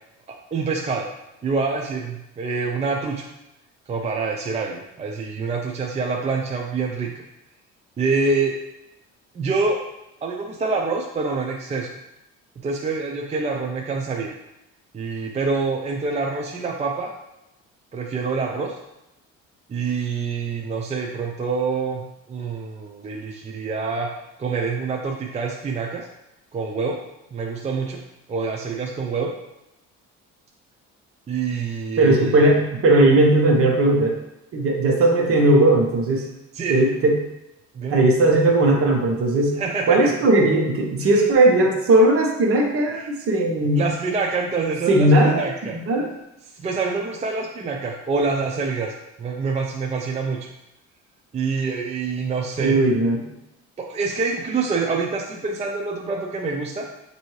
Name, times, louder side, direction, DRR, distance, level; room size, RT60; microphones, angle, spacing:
voice 1, 0.5-1.1 1.4-3.3 3.9-7.2 8.0-8.6 9.3-9.8 10.2-11.9 12.6-14.4 14.9-17.1 17.9-18.8 19.7-22.0 22.3-24.1 24.4-26.1 26.5-27.0 27.3-28.0 28.3-29.3 31.3-32.5 36.5-36.8 37.7-38.0 39.6-40.1 41.0-41.2 42.9-43.1 43.8-45.8 46.5-48.9 49.2-50.4 51.3-52.8 53.8-56.9, right 4 dB, 20° right, 0 dB, 0.4 m, -26 dB
voice 2, 32.0-34.2 34.5-36.3 36.7-37.1 37.9-39.6 39.9-43.9 44.9-45.5 45.7-46.1 52.6-53.3, right 2 dB, 50° right, 0 dB, 1.0 m, -17 dB
6.4 x 2.7 x 3.1 m, 0.89 s
cardioid pair, 115°, 30 cm